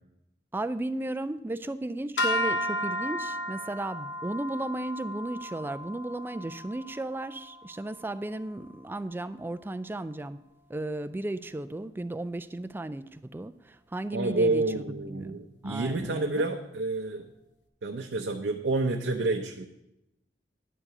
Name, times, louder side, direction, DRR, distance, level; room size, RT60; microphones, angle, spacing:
voice 1, 0.5-10.4 10.7-16.5, right 1 dB, 10° right, 13 dB, 0.3 m, -35 dB
sound 1, 2.2-8.5, equal, 90° left, 0.8 m, -34 dB
voice 2, 14.1-17.3 17.8-19.6, right 2 dB, 85° right, 3 dB, 0.6 m, -29 dB
10.0 x 4.8 x 6.7 m, 0.88 s
head